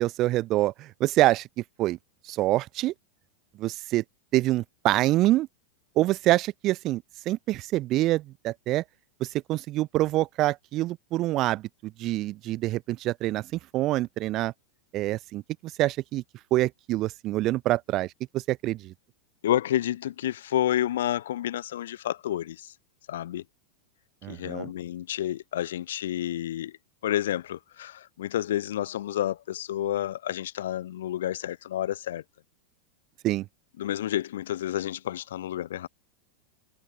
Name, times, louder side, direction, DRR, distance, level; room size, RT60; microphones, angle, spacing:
voice 1, 0.0-1.5 1.8-2.0 2.2-2.9 3.6-4.0 4.3-5.5 5.9-8.8 9.2-14.5 14.9-15.4 15.8-16.2 16.5-18.9 24.2-24.7 33.2-33.4, right 16 dB, 35° right, 1.6 m, -26 dB
voice 2, 19.4-22.7 23.1-23.4 24.3-26.7 27.0-32.2 33.8-35.9, left 12 dB, 60° left, 3.1 m, -30 dB
figure-of-eight pair, 90°, 0 cm